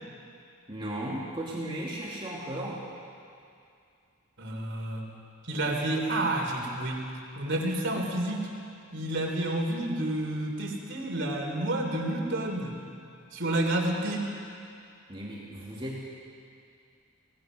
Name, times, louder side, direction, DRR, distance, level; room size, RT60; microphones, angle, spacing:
voice 1, 0.7-2.8 15.1-16.0, right 1 dB, 25° right, -5 dB, 2.3 m, -35 dB
voice 2, 4.4-5.0 5.4-7.1 7.4-8.5 8.9-12.8 13.3-14.3, right 1 dB, 55° right, 0 dB, 3.5 m, -30 dB
25.5 x 18.5 x 6.3 m, 2.4 s
head